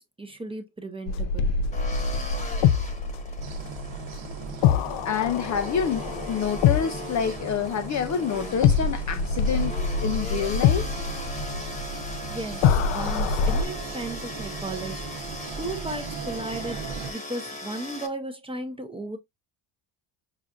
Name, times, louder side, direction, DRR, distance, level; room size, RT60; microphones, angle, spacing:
voice 1, 0.0-1.6 12.2-15.2 15.6-19.2, right 2 dB, 10° right, 0.5 m, -35 dB
sound 1, 1.1-8.1 8.6-13.6, left 6 dB, 80° left, 0.6 m, -25 dB
sound 2, 1.7-18.1, left 2 dB, 15° left, 1.0 m, -39 dB
sound 3, 3.4-17.1, right 6 dB, 65° right, 0.9 m, -38 dB
voice 2, 5.0-9.7 10.0-11.3, left 7 dB, 40° left, 0.4 m, -28 dB
5.7 x 2.5 x 2.3 m
cardioid pair, 135°, 49 cm